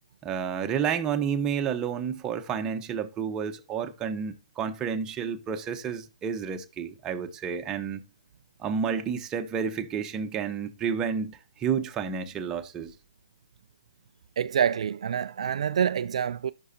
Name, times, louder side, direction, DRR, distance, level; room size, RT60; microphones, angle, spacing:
voice 1, 0.2-8.0 8.6-12.9, right 7 dB, 20° right, 1.0 m, -30 dB
voice 2, 14.4-16.5, right 8 dB, 60° right, 0.4 m, -26 dB
14.5 x 6.3 x 2.8 m
hypercardioid pair, 135°, 4 cm